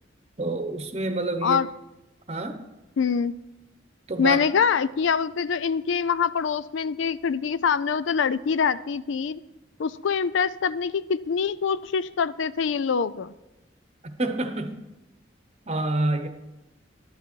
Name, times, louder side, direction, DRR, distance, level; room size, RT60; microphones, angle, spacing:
voice 1, 0.4-1.6 2.3-2.6 4.1-4.4 14.0-14.8 15.7-16.3, right 2 dB, 35° right, 1.0 m, -28 dB
voice 2, 3.0-3.4 4.2-9.4 9.8-13.3, left 6 dB, 75° left, 0.4 m, -24 dB
12.0 x 10.0 x 4.5 m
head